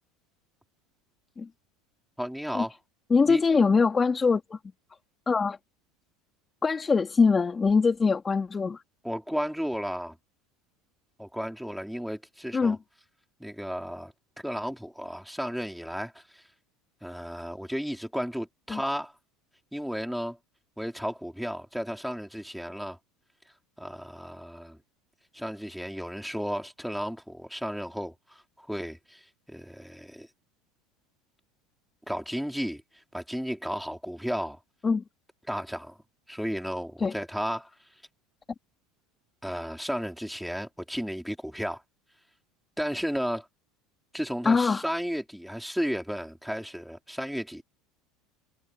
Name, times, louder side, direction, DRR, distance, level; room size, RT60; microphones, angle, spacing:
voice 1, 2.2-2.7 3.2-3.4 9.0-10.1 11.2-12.8 13.4-16.4 17.0-19.1 19.7-20.4 20.8-23.0 23.8-24.8 25.3-30.3 32.1-32.8 33.1-34.6 35.5-36.0 36.3-37.7 39.4-41.8 42.8-43.5 44.1-47.6, equal, ahead, 4.2 m, -33 dB
voice 2, 3.1-4.6 5.3-5.6 6.6-8.8 12.5-12.8 18.7-18.8 34.8-35.0 37.0-37.1 44.5-44.8, left 4 dB, 20° left, 3.5 m, -23 dB
supercardioid pair, 120°, 0 cm